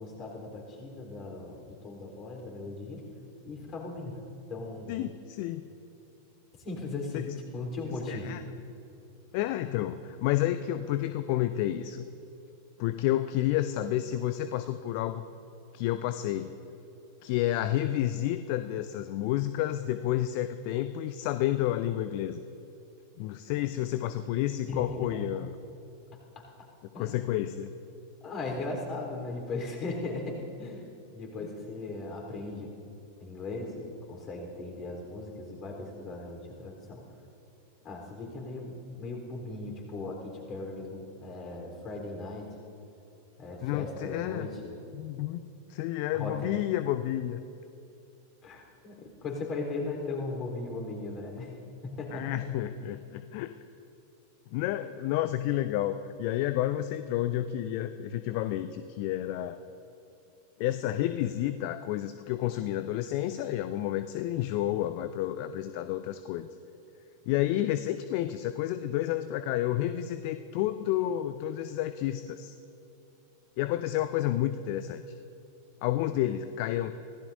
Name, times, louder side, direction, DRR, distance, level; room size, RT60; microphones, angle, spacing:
voice 1, 0.0-3.0 3.4-4.2 4.5-5.0 6.6-8.3 24.7-25.2 26.1-26.2 26.9-27.4 28.2-32.7 33.2-37.0 37.8-42.5 43.4-44.7 46.1-46.5 48.4-51.6 51.8-52.4, left 3 dB, 30° left, 1 dB, 3.8 m, -38 dB
voice 2, 4.9-5.6 7.1-7.4 8.1-8.4 9.3-12.0 12.8-15.2 15.7-16.5 17.2-22.4 23.2-25.6 27.0-27.7 43.6-44.5 44.9-47.4 52.1-53.5 54.5-59.6 60.6-66.5 67.3-72.6 73.6-75.0 75.8-76.9, left 13 dB, 45° left, 12 dB, 0.5 m, -30 dB
25.5 x 17.0 x 2.7 m, 2.7 s
figure-of-eight pair, 90°, 0 cm